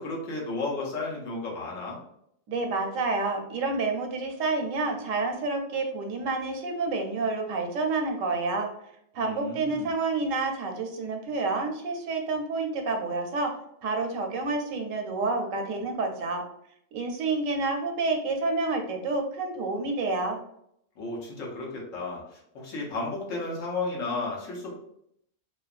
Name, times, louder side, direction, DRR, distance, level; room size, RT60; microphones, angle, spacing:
voice 1, 0.0-2.0 9.2-9.9 21.0-24.7, left 3 dB, 85° left, -2 dB, 1.2 m, -33 dB
voice 2, 2.5-8.7 9.1-16.4 16.9-20.4, right 3 dB, 85° right, 3 dB, 1.0 m, -29 dB
2.8 x 2.2 x 2.4 m, 0.73 s
omnidirectional pair, 1.3 m